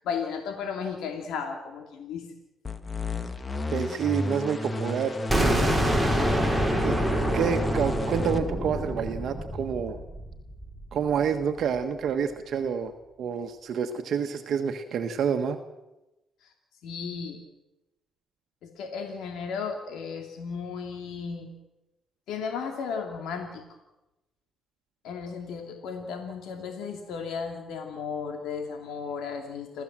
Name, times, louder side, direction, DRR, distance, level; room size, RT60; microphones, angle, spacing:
voice 1, 0.0-2.3 16.4-16.5 16.8-17.4 18.6-21.5 22.3-23.6 25.0-29.8, left 6 dB, 85° left, 4 dB, 2.6 m, -34 dB
sound 1, 2.6-8.4, left 2 dB, 25° left, 1.6 m, -32 dB
voice 2, 3.7-5.7 6.8-7.0 7.3-10.0 10.9-12.9 13.2-15.6, right 7 dB, 65° right, 6 dB, 1.4 m, -28 dB
sound 2, 5.3-11.1, equal, ahead, 6.1 m, -26 dB
29.0 x 14.0 x 7.5 m, 1.0 s
cardioid pair, 90°, 0 cm